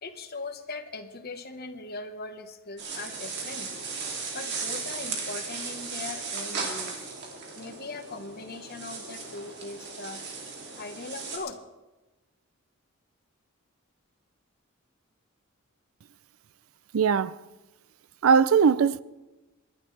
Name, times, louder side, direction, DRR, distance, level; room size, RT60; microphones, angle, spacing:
voice 1, 0.0-3.7 4.3-7.0 7.6-10.2 10.8-11.6, left 3 dB, 50° left, 1.2 m, -40 dB
sound 1, 2.8-11.4, right 4 dB, 55° right, 2.8 m, -36 dB
voice 2, 16.9-17.4 18.2-19.0, right 6 dB, 85° right, 0.5 m, -20 dB
28.0 x 11.5 x 3.3 m
head